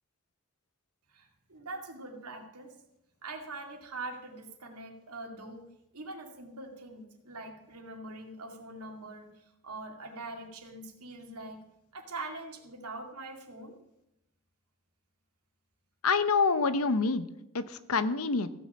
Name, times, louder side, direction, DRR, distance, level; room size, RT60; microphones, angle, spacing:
voice 1, 1.1-2.7 3.2-5.7 5.9-11.6 11.9-13.8, right 2 dB, 85° right, 3 dB, 2.4 m, -43 dB
voice 2, 16.0-17.3 17.5-18.5, left 4 dB, 70° left, 12 dB, 0.8 m, -26 dB
16.0 x 6.2 x 7.4 m, 0.86 s
head